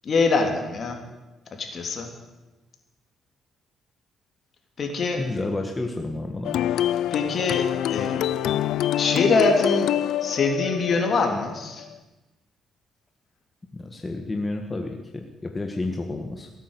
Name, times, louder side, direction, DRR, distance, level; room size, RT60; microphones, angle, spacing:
voice 1, 0.0-1.0 1.6-2.1 4.8-5.2 7.1-7.6 7.9-8.2 9.0-9.9 10.2-11.8, left 3 dB, 50° left, 3 dB, 3.2 m, -23 dB
voice 2, 5.2-6.6 13.7-16.5, left 2 dB, 20° left, 3 dB, 1.5 m, -30 dB
sound 1, 6.4-12.0, left 12 dB, 80° left, 0.4 m, -26 dB
17.5 x 9.1 x 8.2 m, 1.1 s
cardioid pair, 90°, 0 cm